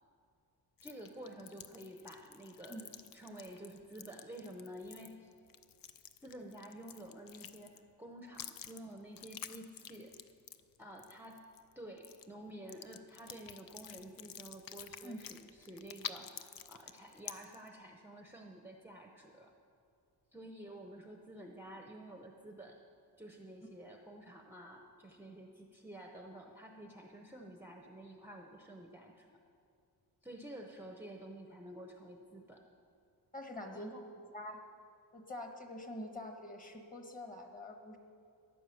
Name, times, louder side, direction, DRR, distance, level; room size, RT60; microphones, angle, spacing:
sound 1, 0.8-7.9 8.3-11.7 12.0-12.3 12.7-17.7, left 9 dB, 60° left, 0.6 m, -49 dB
voice 1, 0.8-5.3 6.2-10.2 10.8-11.5 11.8-19.5 20.3-22.8 23.2-29.3 30.2-32.7 33.7-34.1, right 1 dB, 5° right, 2 dB, 0.7 m, -50 dB
voice 2, 33.3-33.9 34.3-34.7 35.1-38.0, left 1 dB, 20° left, 4 dB, 1.4 m, -45 dB
14.5 x 10.5 x 7.0 m, 2.4 s
wide cardioid pair, 170°, 39 cm